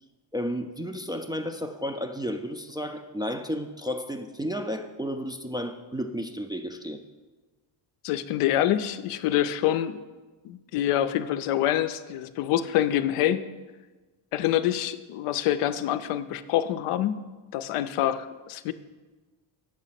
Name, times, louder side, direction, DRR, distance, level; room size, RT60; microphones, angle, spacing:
voice 1, 0.3-7.0, equal, 10° right, 4 dB, 0.3 m, -32 dB
voice 2, 8.0-10.0 10.4-13.4 14.3-17.2 17.5-18.7, left 12 dB, 90° left, 11 dB, 0.6 m, -26 dB
7.5 x 5.1 x 5.7 m, 1.3 s
cardioid pair, 90°, 50 cm